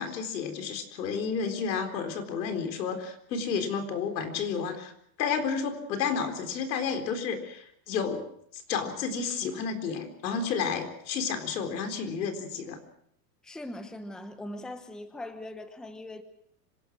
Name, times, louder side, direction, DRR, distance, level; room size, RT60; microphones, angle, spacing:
voice 1, 0.0-4.9 5.2-8.2 8.5-12.8, left 6 dB, 80° left, 6 dB, 4.2 m, -31 dB
voice 2, 13.4-16.2, left 1 dB, ahead, 8 dB, 1.0 m, -40 dB
26.0 x 17.5 x 6.2 m, 0.69 s
supercardioid pair, 150°, 50 cm